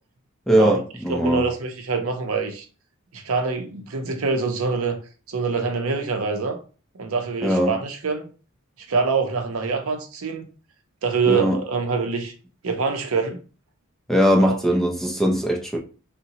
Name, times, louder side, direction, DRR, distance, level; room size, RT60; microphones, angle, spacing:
voice 1, 0.5-1.4 7.4-7.7 11.3-11.6 14.1-15.8, equal, ahead, 0.4 m, -20 dB
voice 2, 1.1-2.6 3.1-5.0 5.3-6.6 7.0-8.3 8.9-10.5 11.0-12.3 12.6-13.4 14.4-14.6, right 4 dB, 70° right, 0.6 m, -25 dB
3.8 x 2.1 x 2.8 m
head